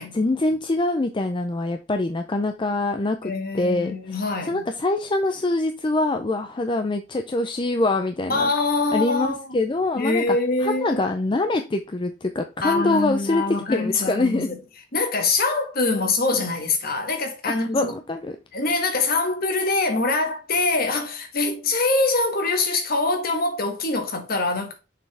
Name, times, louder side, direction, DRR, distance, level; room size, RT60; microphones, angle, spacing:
voice 1, 0.1-8.5 8.9-10.4 10.6-13.4 13.7-14.5 17.6-18.4, left 2 dB, 25° left, 0.5 m, -24 dB
voice 2, 3.2-4.6 8.3-9.5 10.0-11.0 12.6-14.6 14.9-17.9 18.5-24.7, left 3 dB, 50° left, 1.6 m, -24 dB
6.6 x 5.6 x 3.4 m
head